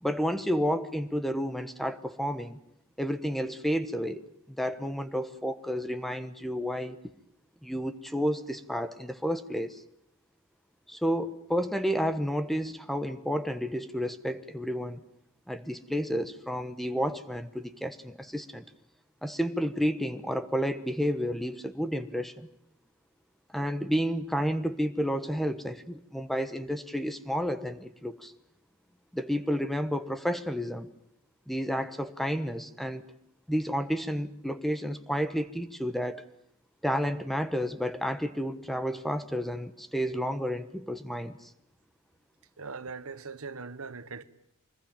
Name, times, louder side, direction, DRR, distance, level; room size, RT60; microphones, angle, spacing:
voice 1, 0.0-2.6 3.0-7.0 7.6-9.8 10.9-15.0 15.5-18.6 19.2-22.5 23.5-28.3 29.1-30.9 31.5-33.1 33.5-36.2 36.8-41.5, equal, ahead, 1.2 m, -31 dB
voice 2, 42.6-44.2, right 4 dB, 70° right, 1.4 m, -40 dB
25.5 x 21.0 x 9.0 m
head